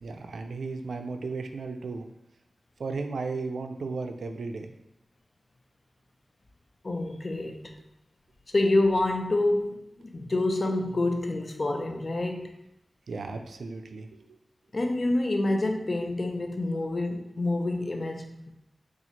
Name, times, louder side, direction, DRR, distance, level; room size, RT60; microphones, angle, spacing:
voice 1, 0.0-2.0 2.8-4.7 13.1-14.4, right 4 dB, 85° right, 6 dB, 0.3 m, -35 dB
voice 2, 6.8-7.7 8.5-12.6 14.7-18.5, left 2 dB, 50° left, 4 dB, 0.5 m, -27 dB
4.2 x 2.4 x 2.9 m, 0.85 s
cardioid pair, 55°, 0 cm